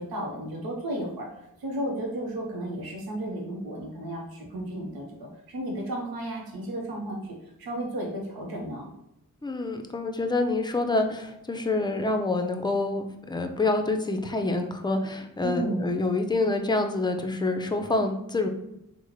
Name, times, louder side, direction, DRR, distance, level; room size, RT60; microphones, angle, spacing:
voice 1, 0.0-7.3 7.6-8.9 15.4-15.9, right 1 dB, 90° right, -1 dB, 0.7 m, -33 dB
voice 2, 9.4-18.5, left 2 dB, 10° left, 5 dB, 0.5 m, -27 dB
3.5 x 2.1 x 3.1 m, 0.84 s
cardioid pair, 40°, 35 cm